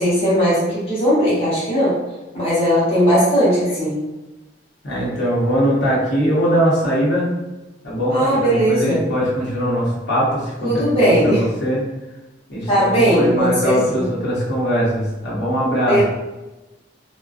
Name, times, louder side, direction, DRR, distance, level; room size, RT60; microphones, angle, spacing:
voice 1, 0.0-2.0 2.3-4.0 8.1-9.0 10.6-11.4 12.7-14.0 15.9-16.0, equal, 35° left, -9 dB, 0.8 m, -18 dB
voice 2, 4.8-7.3 7.8-11.8 12.5-16.0, equal, 70° left, -7 dB, 0.8 m, -20 dB
2.3 x 2.2 x 2.4 m, 1.1 s
head